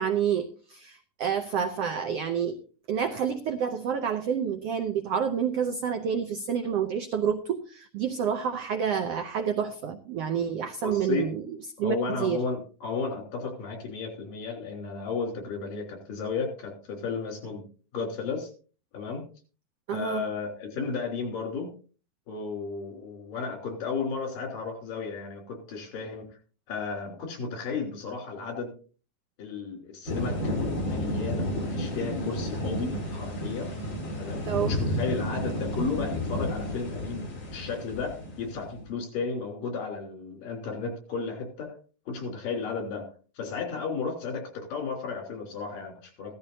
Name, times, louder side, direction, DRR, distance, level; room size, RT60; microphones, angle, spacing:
voice 1, 0.0-2.6 2.9-12.4 19.9-20.2 34.5-34.8, right 7 dB, 90° right, 7 dB, 1.3 m, -29 dB
voice 2, 10.8-11.3 11.8-17.6 17.9-18.5 18.9-19.2 19.9-21.7 22.3-26.2 26.7-28.7 29.4-30.6 30.8-33.7 34.2-41.7 42.1-43.1 43.4-46.3, left 4 dB, 80° left, 3 dB, 5.0 m, -33 dB
sound 1, 30.1-38.9, equal, 35° left, 4.2 m, -32 dB
16.0 x 13.5 x 2.7 m, 0.37 s
omnidirectional pair, 3.8 m